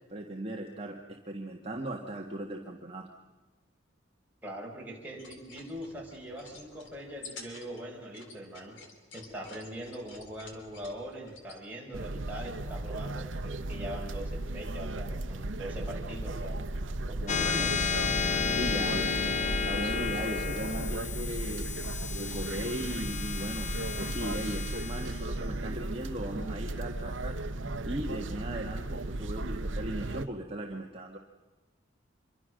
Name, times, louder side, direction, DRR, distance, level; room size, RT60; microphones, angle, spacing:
voice 1, 0.1-3.1 18.5-21.7 22.1-27.4 27.9-31.2, right 1 dB, 30° right, 1 dB, 1.6 m, -38 dB
voice 2, 4.4-8.8 9.1-16.6 17.1-17.9, right 1 dB, 10° right, -3 dB, 5.6 m, -42 dB
sound 1, 5.1-11.6, left 3 dB, 75° left, 3.6 m, -51 dB
sound 2, 11.9-30.3, right 2 dB, 75° right, 0.9 m, -35 dB
sound 3, 17.3-28.1, left 6 dB, 40° left, 0.7 m, -33 dB
26.0 x 23.5 x 6.5 m, 1.2 s
head